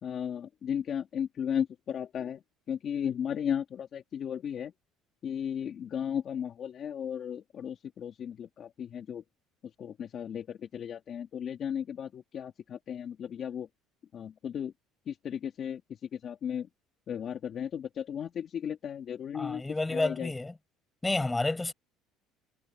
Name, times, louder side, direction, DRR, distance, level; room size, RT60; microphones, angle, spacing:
voice 1, 0.0-2.4 2.7-4.7 5.2-9.2 9.8-13.7 14.1-14.7 15.1-15.8 16.1-16.7 17.1-19.6 19.9-20.3, left 8 dB, 35° left, 3.2 m, -35 dB
voice 2, 19.3-20.5 21.0-21.7, left 2 dB, 10° left, 8.0 m, -30 dB
cardioid pair, 165°, 0 cm